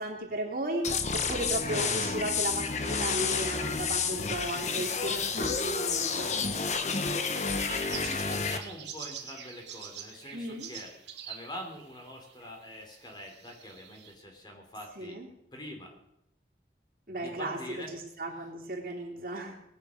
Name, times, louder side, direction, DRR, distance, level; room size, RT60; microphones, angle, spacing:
voice 1, 0.0-6.3 10.3-10.7 15.0-15.3 17.1-17.6 17.9-19.6, right 1 dB, 50° right, -1 dB, 3.3 m, -35 dB
sound 1, 0.8-8.6, left 5 dB, 40° left, 1.2 m, -30 dB
sound 2, 7.6-12.5 12.8-14.1, right 8 dB, 85° right, 2.5 m, -45 dB
voice 2, 7.8-10.9 11.2-15.2 15.5-15.9 17.2-17.9, equal, 25° left, 2 dB, 3.2 m, -45 dB
19.5 x 10.5 x 6.5 m, 0.81 s
head